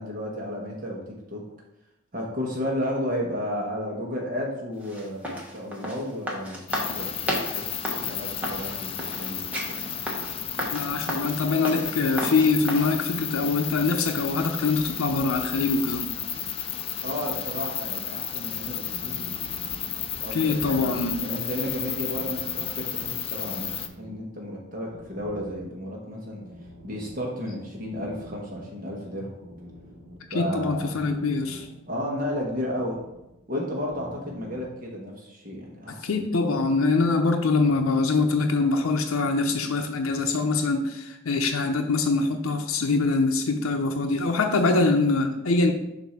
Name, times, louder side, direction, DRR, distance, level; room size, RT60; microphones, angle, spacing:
voice 1, 0.0-1.4 2.1-9.8 17.0-20.9 21.2-26.4 26.8-29.3 30.3-31.0 31.9-33.0 33.5-36.2, equal, 40° right, -2 dB, 1.1 m, -33 dB
sound 1, 4.8-12.9, equal, 5° right, 1.0 m, -33 dB
sound 2, 6.7-23.9, left 9 dB, 25° left, 0.3 m, -33 dB
voice 2, 10.7-16.1 20.3-21.2 30.3-31.7 35.9-45.7, left 3 dB, 90° left, 5 dB, 0.6 m, -24 dB
sound 3, 18.7-34.8, equal, 60° right, 1.2 m, -48 dB
7.4 x 2.7 x 5.6 m, 0.90 s
head